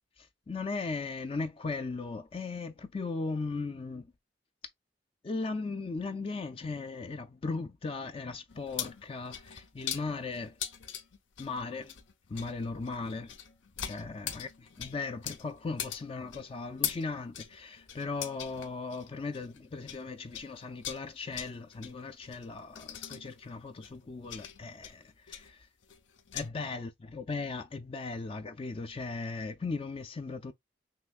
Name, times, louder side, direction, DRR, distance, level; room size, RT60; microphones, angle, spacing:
voice 1, 0.2-4.1 5.2-10.6 11.4-11.9 12.3-13.4 13.8-25.7 26.3-30.5, left 3 dB, 30° left, 0.3 m, -37 dB
sound 1, 8.5-20.1 20.3-26.5, left 9 dB, 85° left, 0.7 m, -41 dB
5.7 x 3.0 x 2.4 m
head